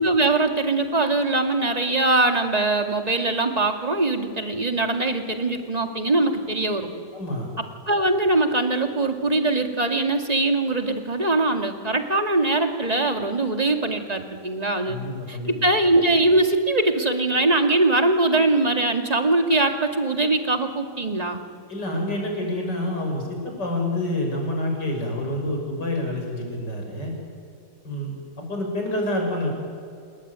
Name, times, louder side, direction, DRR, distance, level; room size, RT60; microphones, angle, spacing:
voice 1, 0.0-6.9 7.6-15.0 15.3-21.4, right 2 dB, 20° right, 5 dB, 2.3 m, -22 dB
voice 2, 7.1-7.5 14.8-15.5 21.7-27.1 27.8-29.5, left 1 dB, 75° left, 1 dB, 6.9 m, -28 dB
28.0 x 21.0 x 9.6 m, 2.4 s
omnidirectional pair, 1.9 m